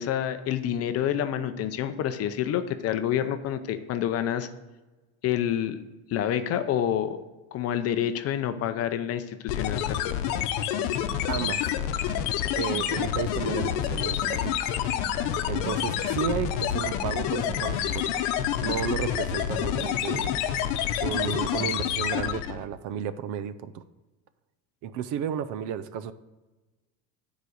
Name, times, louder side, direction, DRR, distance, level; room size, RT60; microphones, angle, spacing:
voice 1, 0.0-4.5 5.2-5.8 6.1-7.2 7.5-10.2, left 10 dB, 40° left, 10 dB, 0.6 m, -28 dB
sound 1, 9.5-22.6, left 10 dB, 75° left, 0.9 m, -28 dB
voice 2, 11.3-11.7 12.5-14.7 15.5-18.3 18.6-20.4 21.0-23.8 24.8-26.1, right 8 dB, 50° right, 13 dB, 0.5 m, -33 dB
sound 2, 11.4-22.2, left 1 dB, 15° right, 1.9 m, -42 dB
9.4 x 5.0 x 6.4 m, 1.2 s
cardioid pair, 160°, 39 cm